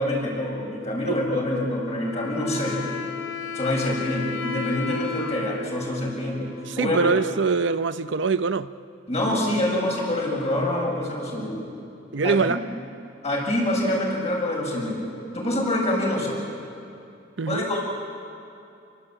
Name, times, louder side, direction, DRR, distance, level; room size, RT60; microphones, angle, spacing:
voice 1, 0.0-2.8 3.5-6.5 6.8-7.1 9.1-11.7 12.2-12.4 13.2-15.0 15.3-16.4 17.5-17.8, left 1 dB, 35° left, 7.5 m, -26 dB
Wind instrument woodwind instrument, 1.9-7.4, left 4 dB, 85° left, 2.8 m, -34 dB
voice 2, 6.7-8.7 12.1-12.6 17.4-17.6, right 4 dB, 65° right, 0.6 m, -23 dB
29.5 x 20.0 x 9.1 m
head